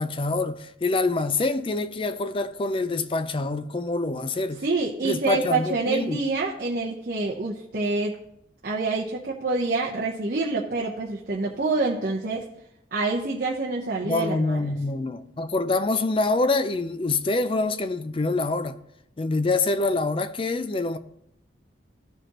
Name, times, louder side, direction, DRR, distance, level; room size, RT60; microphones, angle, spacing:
voice 1, 0.0-4.6 5.0-6.2 14.0-18.8 19.2-21.0, left 3 dB, 30° left, 0.4 m, -25 dB
voice 2, 4.6-8.1 8.6-12.4 12.9-14.6, right 3 dB, 50° right, 0.8 m, -27 dB
14.5 x 4.9 x 3.0 m
head